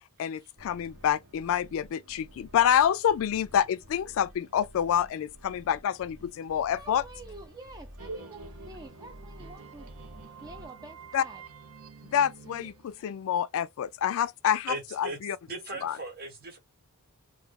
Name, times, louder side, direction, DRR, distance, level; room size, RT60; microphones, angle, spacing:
voice 1, 0.2-7.0 11.1-11.2 12.1-15.4 15.8-16.0, left 9 dB, 65° left, 0.3 m, -27 dB
sound 1, 0.6-10.7, equal, 60° right, 1.2 m, -51 dB
voice 2, 6.7-11.4, right 2 dB, 15° right, 0.4 m, -48 dB
sound 2, 8.0-13.6, right 5 dB, 90° right, 0.6 m, -49 dB
voice 3, 14.7-15.2 15.5-16.6, right 2 dB, 45° right, 1.1 m, -37 dB
2.6 x 2.3 x 3.4 m
head